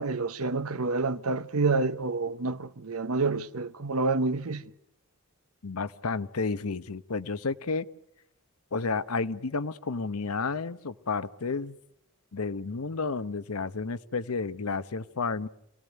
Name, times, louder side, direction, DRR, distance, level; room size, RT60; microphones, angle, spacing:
voice 1, 0.0-4.6, right 3 dB, 80° right, 1.0 m, -28 dB
voice 2, 5.6-7.9 8.7-11.8 12.3-15.5, left 4 dB, 85° left, 0.9 m, -31 dB
27.0 x 18.0 x 9.3 m
head